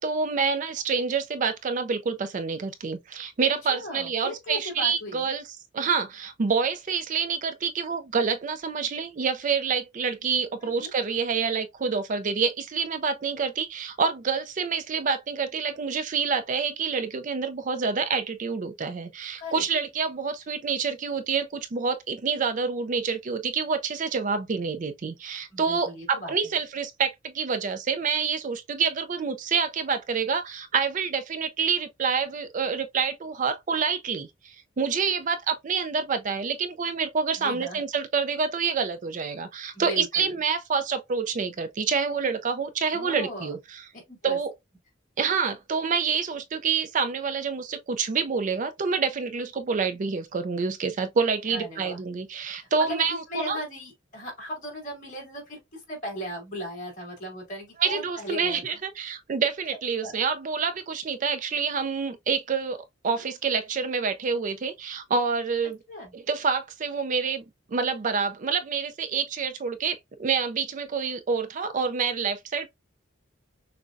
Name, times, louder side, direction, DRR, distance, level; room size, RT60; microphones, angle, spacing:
voice 1, 0.0-5.4 5.7-43.8 44.2-44.5 45.2-53.6 57.8-65.8 66.1-67.4 67.7-72.7, right 5 dB, 40° right, 0.4 m, -27 dB
voice 2, 3.7-5.3 10.6-10.9 19.4-19.6 25.5-26.5 35.0-35.1 37.4-37.8 39.7-40.4 42.9-43.6 43.9-44.4 51.5-52.0 52.6-58.6 60.0-60.1 63.2-63.3 65.9-66.1, equal, 40° left, 2.8 m, -37 dB
6.2 x 2.2 x 2.5 m
head